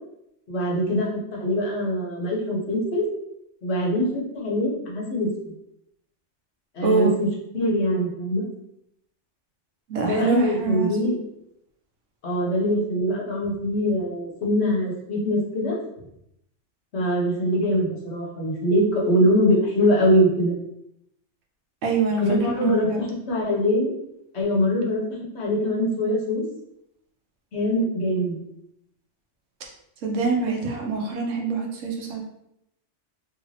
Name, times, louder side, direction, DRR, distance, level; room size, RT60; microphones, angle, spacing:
voice 1, 0.5-3.0 3.6-5.3 6.7-7.3 7.5-8.4 10.0-11.2 12.2-15.8 16.9-20.6 22.2-22.9 23.3-23.9 24.3-25.0 25.3-26.4 27.5-28.4, equal, 65° left, -3 dB, 1.2 m, -23 dB
voice 2, 6.8-7.2 9.9-10.9 21.8-23.1 30.0-32.2, right 4 dB, 90° right, 0 dB, 1.1 m, -25 dB
3.1 x 2.5 x 3.2 m, 0.79 s
omnidirectional pair, 1.2 m